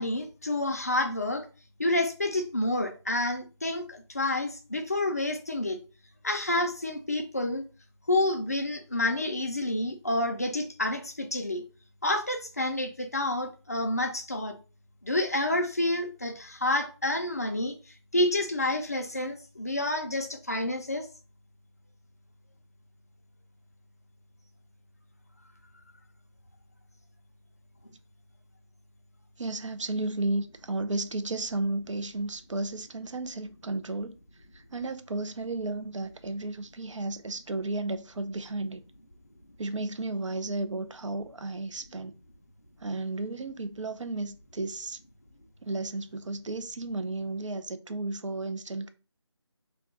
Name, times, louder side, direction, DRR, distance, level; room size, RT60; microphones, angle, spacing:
voice 1, 0.0-1.5 1.8-5.8 6.2-7.6 8.1-11.6 12.0-14.6 15.0-17.7 18.1-21.1, left 1 dB, 35° left, 0.4 m, -29 dB
voice 2, 29.4-34.2 34.5-38.8 39.6-42.1 42.8-45.0 45.6-48.9, right 2 dB, 90° right, 0.5 m, -33 dB
2.3 x 2.2 x 3.9 m
figure-of-eight pair, 165°, 15 cm